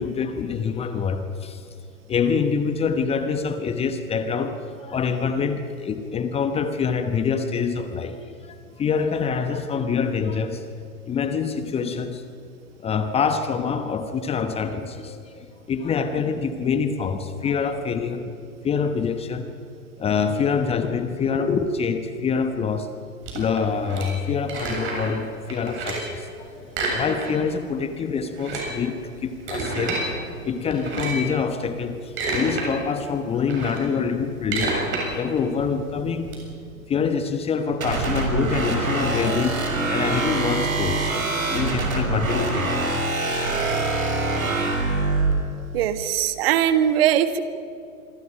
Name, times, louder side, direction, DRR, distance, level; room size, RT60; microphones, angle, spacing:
voice 1, 0.0-1.6 2.1-10.6 11.1-12.2 12.8-18.3 18.6-19.5 20.0-22.9 23.3-30.0 30.4-34.8 35.2-36.3 36.9-42.7, left 6 dB, 15° left, 9 dB, 1.1 m, -25 dB
sound 1, 23.2-25.2 25.5-26.2 26.7-27.6 27.8-27.9 28.3-30.1 30.7-31.3 31.8-32.7 33.0-36.4, right 2 dB, 25° right, 7.4 m, -29 dB
sound 2, 37.8-45.3, right 3 dB, 70° right, 6.0 m, -24 dB
voice 2, 45.7-47.4, right 10 dB, 40° right, 11 dB, 1.6 m, -20 dB
27.0 x 23.5 x 5.8 m, 2.5 s
figure-of-eight pair, 110°, 44 cm